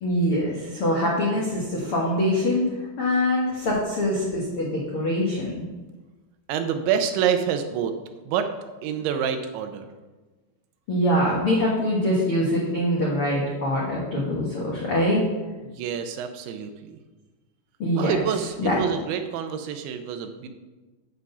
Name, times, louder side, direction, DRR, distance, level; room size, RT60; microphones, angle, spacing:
voice 1, 0.0-2.6 3.0-5.6 10.9-15.2 17.8-18.2 18.6-18.8, left 1 dB, 75° left, -4 dB, 1.2 m, -24 dB
voice 2, 6.5-7.9 8.3-8.5 8.8-9.9 15.6-17.0 18.0-20.5, right 8 dB, 90° right, 7 dB, 3.2 m, -27 dB
10.0 x 4.8 x 6.9 m, 1.2 s
omnidirectional pair, 5.1 m